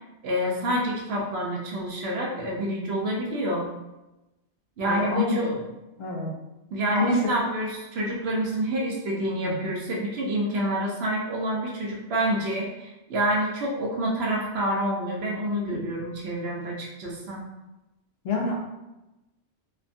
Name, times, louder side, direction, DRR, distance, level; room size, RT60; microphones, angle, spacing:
voice 1, 0.2-3.7 4.8-5.6 6.7-17.4, right 1 dB, 65° right, -2 dB, 0.9 m, -28 dB
voice 2, 4.8-5.5 6.0-6.3 6.9-7.3 9.4-9.6 18.2-18.5, left 2 dB, 65° left, -2 dB, 0.8 m, -26 dB
3.3 x 2.2 x 2.5 m, 0.99 s
omnidirectional pair, 1.2 m